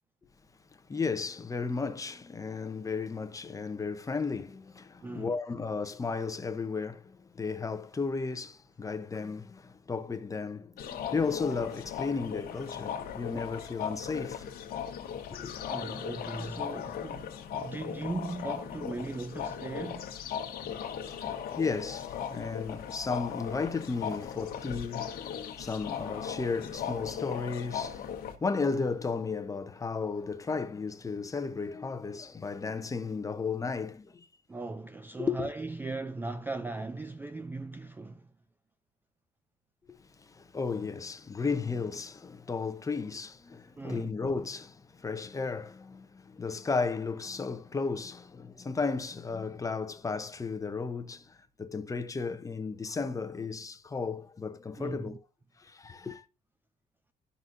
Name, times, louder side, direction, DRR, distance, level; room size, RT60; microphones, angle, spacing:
voice 1, 0.9-14.5 15.0-15.5 20.7-34.3 35.2-35.5 39.9-55.2 55.6-56.2, left 4 dB, 20° left, 0.7 m, -34 dB
voice 2, 5.0-5.4 13.3-13.7 15.7-20.1 34.5-38.3 43.8-44.1 54.8-55.2, right 3 dB, 10° right, 0.3 m, -38 dB
sound 1, 10.8-28.3, left 8 dB, 65° left, 1.2 m, -38 dB
12.0 x 4.1 x 2.6 m
cardioid pair, 110°, 17 cm